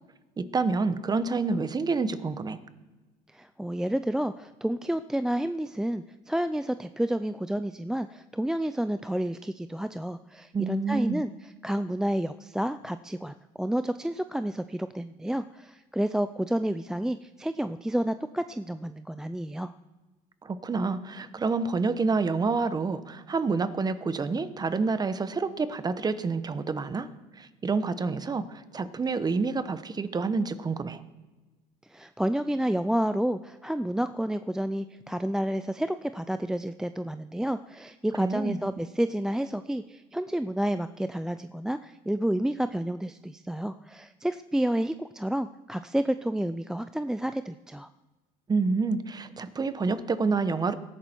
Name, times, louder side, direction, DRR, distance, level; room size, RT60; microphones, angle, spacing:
voice 1, 0.4-2.6 10.5-11.2 20.4-27.1 27.4-31.0 38.2-38.6 48.5-50.7, right 4 dB, 25° right, 12 dB, 1.1 m, -28 dB
voice 2, 3.3-19.7 31.9-47.9, right 1 dB, 5° right, 11 dB, 0.4 m, -30 dB
17.5 x 13.5 x 4.5 m, 1.2 s
supercardioid pair, 90°, 16 cm